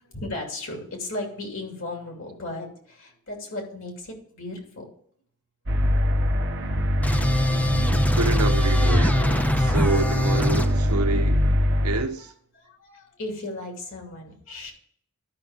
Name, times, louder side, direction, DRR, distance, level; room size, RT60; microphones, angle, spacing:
voice 1, 0.1-4.8 12.6-14.7, left 2 dB, 60° left, 2.6 m, -35 dB
sound 1, 5.7-12.0, equal, 55° right, 1.1 m, -23 dB
sound 2, 7.0-10.7, left 1 dB, 5° left, 0.5 m, -24 dB
voice 2, 8.1-11.4 11.8-12.3, right 3 dB, 90° right, 1.1 m, -28 dB
12.5 x 5.9 x 3.6 m
head